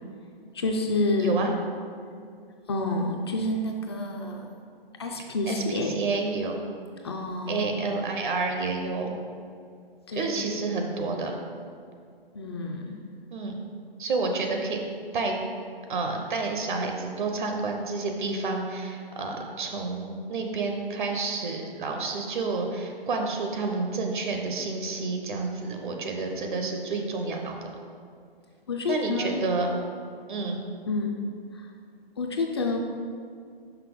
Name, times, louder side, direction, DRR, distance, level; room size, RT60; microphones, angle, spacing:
voice 1, 0.5-1.4 2.7-4.5 5.0-6.0 7.0-7.8 10.1-10.3 12.3-13.0 28.7-29.4 30.9-31.2 31.5-31.7 32.2-32.8, left 2 dB, 30° left, 2 dB, 0.4 m, -28 dB
voice 2, 5.5-6.6 7.5-9.1 10.1-11.4 13.3-13.5 14.0-14.8 15.1-15.4 15.9-27.6 28.9-29.7 30.3-30.6, right 3 dB, 55° right, 3 dB, 0.8 m, -29 dB
5.8 x 5.5 x 3.8 m, 2.3 s
figure-of-eight pair, 130°, 30 cm